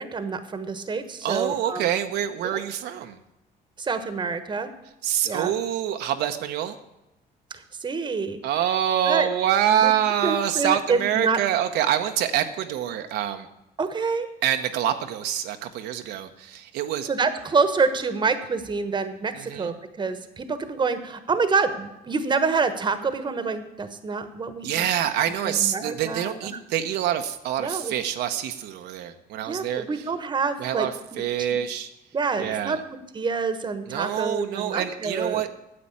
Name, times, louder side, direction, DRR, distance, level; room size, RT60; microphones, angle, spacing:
voice 1, 0.0-1.9 2.4-2.6 3.8-4.7 5.2-5.5 7.5-8.4 9.0-9.3 9.7-9.9 10.2-11.4 13.8-14.3 17.1-24.9 25.4-26.6 27.6-27.9 29.4-30.9 31.1-31.5 32.1-32.8 33.1-35.4, right 4 dB, 25° right, 10 dB, 1.2 m, -27 dB
voice 2, 1.2-3.2 5.0-6.7 8.4-13.5 14.4-17.1 19.3-19.7 24.6-29.8 30.6-31.9 32.4-32.8 33.9-35.5, right 10 dB, 80° right, 6 dB, 0.9 m, -26 dB
9.7 x 7.6 x 8.5 m, 0.93 s
cardioid pair, 110°, 17 cm